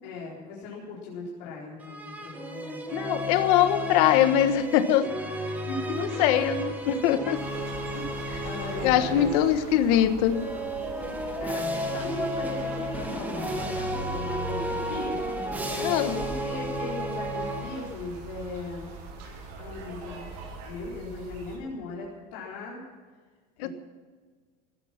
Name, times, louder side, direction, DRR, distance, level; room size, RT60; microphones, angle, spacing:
voice 1, 0.0-3.0 5.7-6.2 7.9-8.1 8.4-9.3 11.1-11.2 11.4-18.9 19.6-22.8 23.6-23.7, left 3 dB, 80° left, -5 dB, 4.2 m, -38 dB
sound 1, 1.8-9.7 10.3-18.2, right 1 dB, 10° right, 1.6 m, -33 dB
voice 2, 2.9-5.1 6.0-7.4 8.8-10.4 15.8-16.2 23.6-23.7, left 10 dB, 65° left, 10 dB, 1.4 m, -22 dB
sound 2, 6.0-20.7, right 4 dB, 85° right, 6.7 m, -47 dB
sound 3, 7.3-21.6, right 3 dB, 65° right, 4.7 m, -44 dB
16.5 x 14.0 x 5.9 m, 1.5 s
cardioid pair, 180°, 21 cm